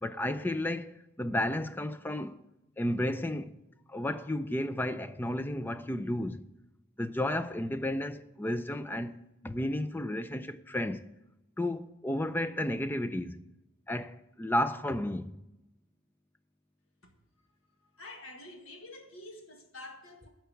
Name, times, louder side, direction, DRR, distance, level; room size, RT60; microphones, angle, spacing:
voice 1, 0.0-2.4 2.8-3.5 3.9-6.4 7.0-9.2 9.4-11.1 11.6-13.4 13.9-15.4, left 1 dB, 10° left, 0.4 m, -32 dB
voice 2, 17.8-20.3, left 2 dB, 85° left, 1.8 m, -48 dB
11.5 x 4.6 x 8.3 m
head